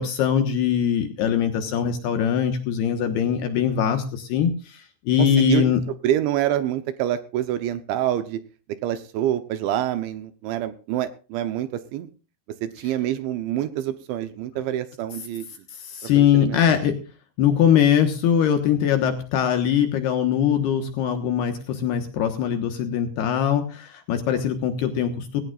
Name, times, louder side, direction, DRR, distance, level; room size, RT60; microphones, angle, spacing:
voice 1, 0.0-5.8 15.7-17.0 17.4-25.4, left 9 dB, 70° left, 6 dB, 2.8 m, -22 dB
voice 2, 5.2-5.6 6.0-8.4 8.8-12.1 12.6-15.5 16.2-16.8, right 12 dB, 75° right, 10 dB, 3.0 m, -26 dB
19.0 x 18.0 x 2.5 m, 0.36 s
omnidirectional pair, 5.8 m